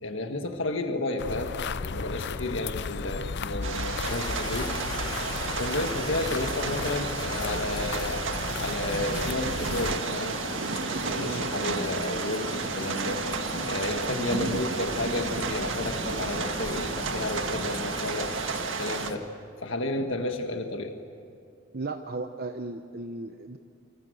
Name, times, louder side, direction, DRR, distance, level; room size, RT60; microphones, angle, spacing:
voice 1, 0.0-4.7 5.5-8.2 8.6-10.4 11.0-13.3 13.5-18.3 18.8-19.3 19.6-20.9, left 2 dB, 80° left, 5 dB, 1.6 m, -32 dB
sound 1, 1.2-10.0, left 4 dB, 60° left, 0.6 m, -35 dB
sound 2, 3.6-19.1, right 4 dB, 80° right, 1.8 m, -32 dB
sound 3, 4.1-19.2, left 2 dB, 25° left, 1.8 m, -38 dB
voice 2, 21.7-23.6, right 3 dB, 55° right, 6 dB, 0.9 m, -36 dB
28.0 x 26.0 x 8.0 m, 2.5 s
head